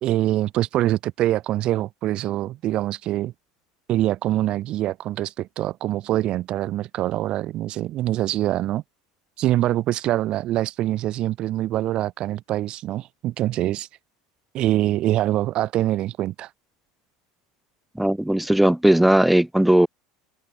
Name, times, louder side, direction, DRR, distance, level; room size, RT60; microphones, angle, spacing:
voice 1, 0.0-3.3 3.9-8.8 9.4-13.9 14.5-16.5, right 14 dB, 45° right, 0.5 m, -24 dB
voice 2, 18.0-19.9, right 1 dB, 5° right, 0.8 m, -17 dB
figure-of-eight pair, 75°, 2 cm